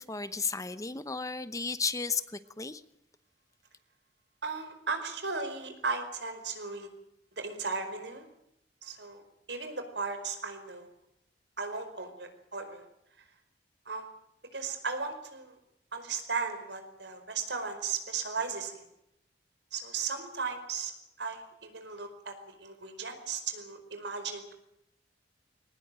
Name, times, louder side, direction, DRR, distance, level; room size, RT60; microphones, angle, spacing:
voice 1, 0.0-2.8, left 4 dB, 20° left, 13 dB, 0.9 m, -34 dB
voice 2, 4.4-6.9 7.4-8.3 8.8-9.2 9.5-10.9 11.6-12.9 13.8-14.1 14.5-15.6 15.9-18.8 19.7-20.9 21.2-24.5, right 4 dB, 70° right, 8 dB, 4.9 m, -36 dB
22.0 x 19.0 x 9.0 m, 0.80 s
head